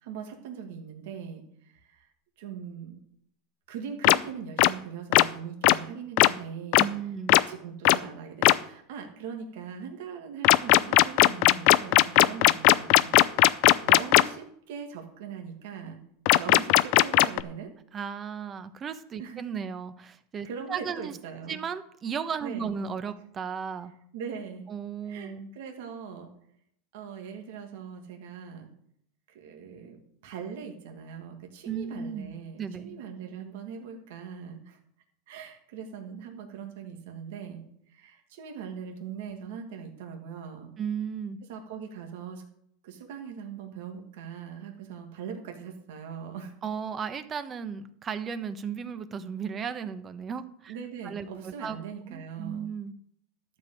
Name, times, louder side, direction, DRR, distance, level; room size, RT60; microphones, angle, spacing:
voice 1, 0.0-2.1 2.4-3.0 3.7-6.9 7.5-13.2 13.8-16.0 16.3-17.7 19.2-19.4 20.4-21.6 22.4-22.7 24.1-24.7 25.1-26.3 26.9-28.7 29.3-34.8 35.3-37.6 37.9-40.7 41.5-42.4 42.8-46.5 50.7-52.7, right 7 dB, 75° right, 3 dB, 2.3 m, -41 dB
sound 1, 4.0-4.2 4.6-4.7 5.1-5.2 5.6-5.7 6.2-6.3 6.7-6.8 7.3-7.4 7.9-8.0 8.4-8.5 10.4-14.2 16.3-17.4, left 19 dB, 60° left, 0.5 m, -17 dB
voice 2, 6.8-7.4 17.9-21.1 21.5-23.9 24.7-25.5 31.7-33.0 40.8-41.4 46.6-50.8 51.0-51.8 52.1-52.9, right 7 dB, 30° right, 11 dB, 1.0 m, -35 dB
12.0 x 5.3 x 8.1 m, 0.68 s
supercardioid pair, 125°, 0 cm